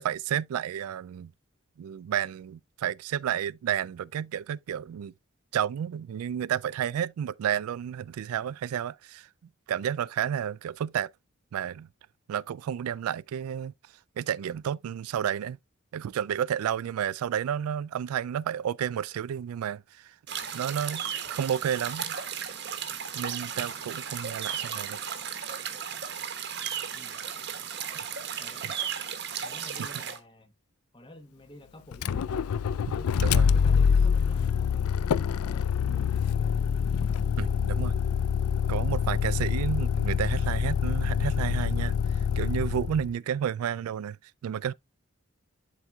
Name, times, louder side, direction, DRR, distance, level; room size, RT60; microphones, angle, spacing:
voice 1, 0.0-1.3 1.8-5.1 5.5-9.3 9.7-11.1 11.5-11.9 12.3-13.7 14.2-15.6 15.9-20.1 20.5-21.0 21.3-22.2 23.1-25.0 28.6-28.7 29.8-30.0 33.2-33.5 37.4-37.9 38.7-44.2 44.4-44.7, right 9 dB, 85° right, 0.3 m, -31 dB
sound 1, 20.3-30.2, right 8 dB, 50° right, 1.2 m, -35 dB
voice 2, 29.4-30.5 30.9-32.3 32.8-35.0 35.3-36.6, left 1 dB, 20° left, 1.0 m, -50 dB
Motor vehicle (road), 31.9-43.1, left 7 dB, 85° left, 0.4 m, -26 dB
11.5 x 4.4 x 2.3 m
head